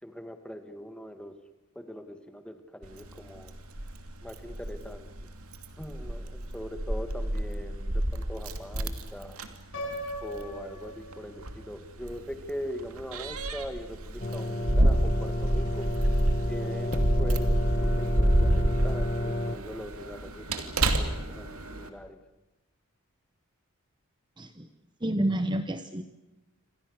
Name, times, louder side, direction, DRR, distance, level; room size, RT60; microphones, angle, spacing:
voice 1, 0.0-1.4 1.8-3.5 4.2-5.1 5.8-9.4 10.2-16.1 16.5-22.2, equal, 5° left, 8 dB, 2.0 m, -41 dB
Keys jangling, 2.8-21.9, right 1 dB, 75° right, 2.7 m, -29 dB
Piano, 9.7-11.7, equal, 55° left, 7.1 m, -39 dB
sound 1, 14.2-19.6, left 1 dB, 35° left, 2.0 m, -31 dB
voice 2, 24.4-24.7 25.0-26.1, right 1 dB, 20° right, 9 dB, 1.0 m, -29 dB
29.0 x 25.5 x 6.6 m, 0.98 s
head